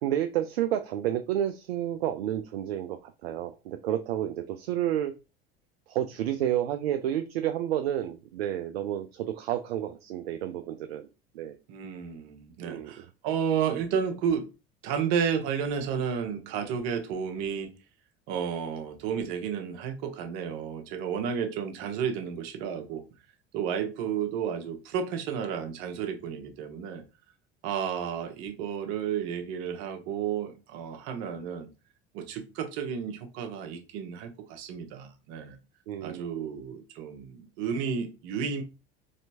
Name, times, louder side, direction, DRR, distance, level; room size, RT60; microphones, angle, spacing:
voice 1, 0.0-5.1 5.9-11.1 11.3-11.6 12.6-13.0 35.9-36.5, right 11 dB, 75° right, 0.5 m, -30 dB
voice 2, 11.7-14.5 14.8-17.7 18.3-23.0 23.5-27.0 27.6-31.7 32.1-35.6 36.0-38.6, right 7 dB, 60° right, 1.0 m, -32 dB
4.2 x 3.2 x 2.7 m
figure-of-eight pair, 65°, 31 cm